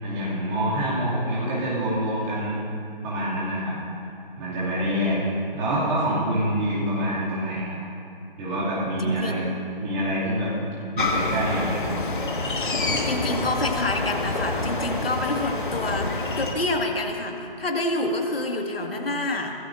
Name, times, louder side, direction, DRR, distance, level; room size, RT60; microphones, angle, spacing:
voice 1, 0.0-2.5 3.0-3.8 4.4-5.2 5.5-7.8 8.4-9.5 9.8-10.7 10.9-11.9, equal, 10° right, -9 dB, 2.5 m, -26 dB
voice 2, 9.0-9.4 13.1-19.6, left 2 dB, 80° left, 2 dB, 2.0 m, -27 dB
sound 1, 11.0-16.6, left 2 dB, 60° left, 1.6 m, -27 dB
23.5 x 17.5 x 2.6 m, 2.6 s
figure-of-eight pair, 170°, 29 cm